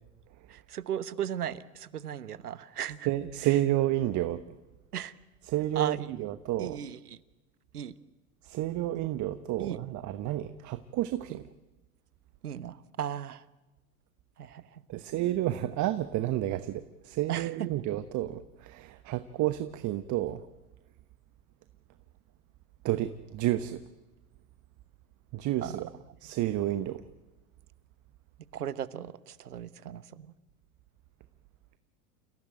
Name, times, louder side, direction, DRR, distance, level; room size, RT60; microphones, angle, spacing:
voice 1, 0.5-3.1 3.4-3.6 4.9-5.1 5.7-6.3 6.6-7.2 7.7-7.9 9.6-9.8 11.3-11.4 12.4-13.4 14.4-15.0 17.3-17.8 25.6-25.8 28.5-30.3, right 10 dB, 90° right, 1.2 m, -37 dB
voice 2, 3.1-4.4 5.5-6.8 8.4-11.4 14.9-20.4 22.8-23.8 25.3-25.9 26.2-27.0, right 14 dB, 40° right, 1.2 m, -30 dB
29.0 x 17.0 x 9.1 m
hypercardioid pair, 95°, 44 cm